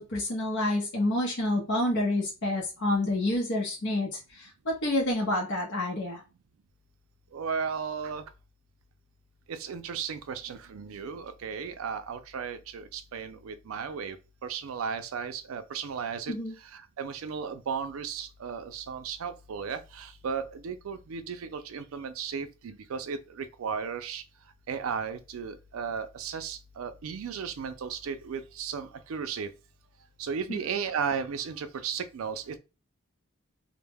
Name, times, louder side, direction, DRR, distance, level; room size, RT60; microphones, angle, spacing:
voice 1, 0.0-6.2 16.3-16.5 30.5-30.6, left 1 dB, 55° left, 0.7 m, -28 dB
voice 2, 7.3-8.2 9.5-14.2 14.4-16.3 16.7-24.2 24.7-29.5 30.2-32.6, right 6 dB, 75° right, 0.4 m, -35 dB
2.2 x 2.0 x 3.3 m
head